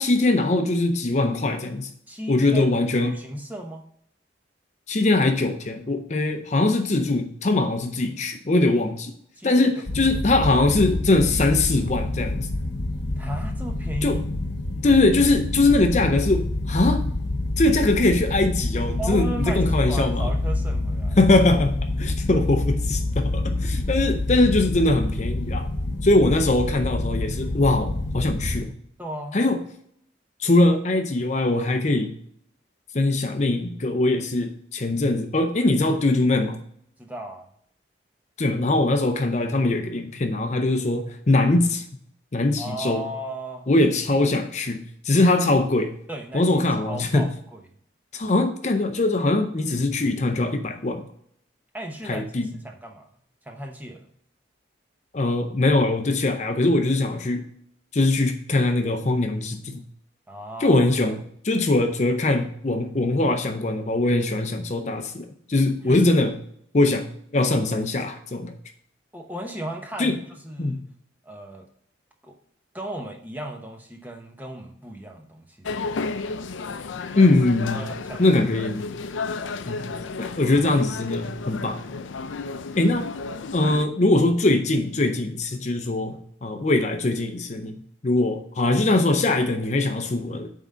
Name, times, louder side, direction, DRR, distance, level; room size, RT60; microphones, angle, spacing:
voice 1, 0.0-1.9 2.3-3.2 4.9-9.1 9.4-12.5 14.0-14.2 14.8-17.0 17.6-20.3 21.2-25.7 26.0-28.7 29.3-29.6 30.4-32.1 32.9-36.6 38.4-41.8 42.3-43.0 43.7-45.9 46.3-47.3 48.1-51.1 52.1-52.5 55.1-57.5 57.9-59.8 60.6-66.4 66.7-68.5 70.0-70.2 70.6-70.8 77.2-77.9 78.2-78.9 79.7-79.9 80.2-81.8 82.8-83.1 83.5-90.5, left 2 dB, 40° left, 6 dB, 0.6 m, -22 dB
voice 2, 2.1-2.7 3.0-3.9 9.4-9.7 13.2-14.3 19.0-21.2 29.0-29.4 37.0-37.5 42.6-43.7 46.1-47.6 51.7-52.3 52.6-53.1 53.4-54.1 60.3-61.1 65.9-66.0 69.1-70.8 71.2-71.7 72.2-72.3 72.7-76.0 77.6-78.6 79.4-79.6 80.2-80.4, right 1 dB, 10° right, 3 dB, 0.8 m, -36 dB
sound 1, 9.9-28.6, left 2 dB, 70° left, 1.1 m, -27 dB
sound 2, 75.7-83.9, left 4 dB, 90° left, 0.5 m, -32 dB
8.9 x 3.7 x 5.5 m, 0.66 s
head